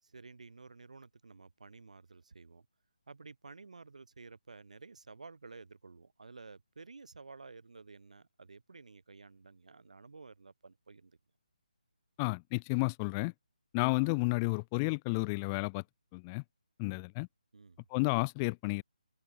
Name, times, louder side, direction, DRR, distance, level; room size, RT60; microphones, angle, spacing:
voice 1, 0.0-2.7 3.1-11.2 16.9-17.0 17.5-17.8, right 4 dB, 60° right, 3.8 m, -53 dB
voice 2, 12.2-13.3 13.7-15.8 16.1-16.4 16.8-17.3 17.9-18.8, left 29 dB, 15° left, 0.7 m, -31 dB
open air
figure-of-eight pair, 150°, 4 cm